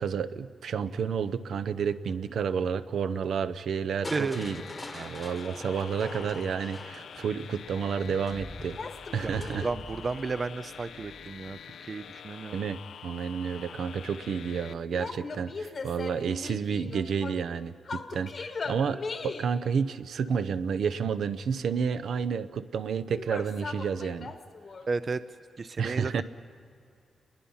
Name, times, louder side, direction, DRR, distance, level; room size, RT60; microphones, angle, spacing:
voice 1, 0.0-4.6 4.9-8.8 9.1-9.7 12.5-24.3 25.8-26.2, right 6 dB, 70° right, 13 dB, 0.7 m, -30 dB
Crushing, 4.0-12.0 13.6-14.1 14.6-14.7, left 1 dB, 10° left, 1.1 m, -45 dB
sound 1, 4.3-14.7, left 8 dB, 70° left, 0.5 m, -46 dB
sound 2, 8.8-9.9 14.9-17.5 17.9-19.6 23.1-24.9, left 4 dB, 35° left, 1.1 m, -39 dB
voice 2, 9.2-12.6 24.9-25.2 25.6-26.2, right 4 dB, 30° right, 12 dB, 0.5 m, -33 dB
30.0 x 21.5 x 5.7 m, 2.5 s
wide cardioid pair, 180°, 0 cm